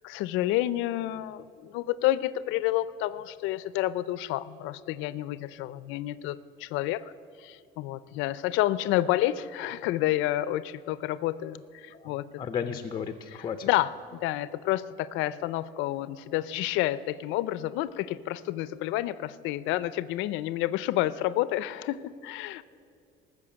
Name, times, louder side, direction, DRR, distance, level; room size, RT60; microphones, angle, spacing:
voice 1, 0.0-7.0 7.4-12.3 13.6-22.6, left 15 dB, 90° left, 16 dB, 0.5 m, -29 dB
voice 2, 11.9-13.7, left 7 dB, 25° left, 9 dB, 0.5 m, -35 dB
19.5 x 6.5 x 8.7 m, 2.5 s
cardioid pair, 170°, 20 cm